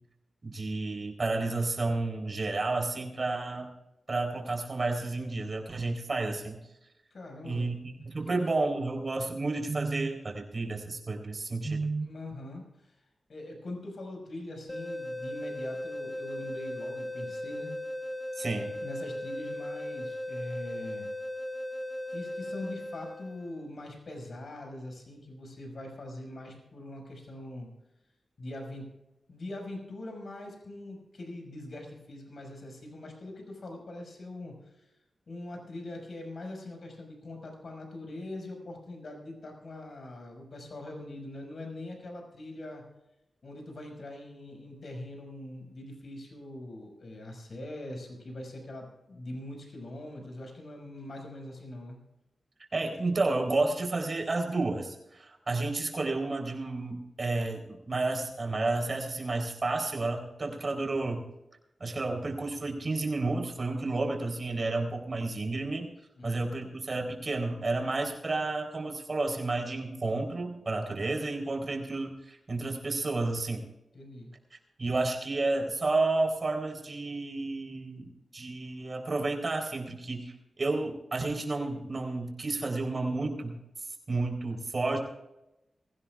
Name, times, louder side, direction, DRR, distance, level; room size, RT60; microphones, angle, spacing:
voice 1, 0.4-3.7 4.1-6.6 7.4-12.1 18.4-18.7 52.7-61.3 61.8-65.9 66.2-73.6 74.8-83.6 84.1-85.0, right 3 dB, 40° right, 1 dB, 3.9 m, -31 dB
voice 2, 7.1-7.7 8.3-8.5 12.0-13.0 13.3-17.7 18.8-21.1 22.1-27.7 28.4-28.9 29.3-34.9 35.3-42.8 43.4-52.0 66.2-66.4 73.9-74.3, left 1 dB, 60° left, 2 dB, 5.7 m, -42 dB
sound 1, 14.7-23.6, left 1 dB, 15° left, 0.7 m, -37 dB
22.5 x 15.5 x 2.5 m, 0.93 s
wide cardioid pair, 90°, 0 cm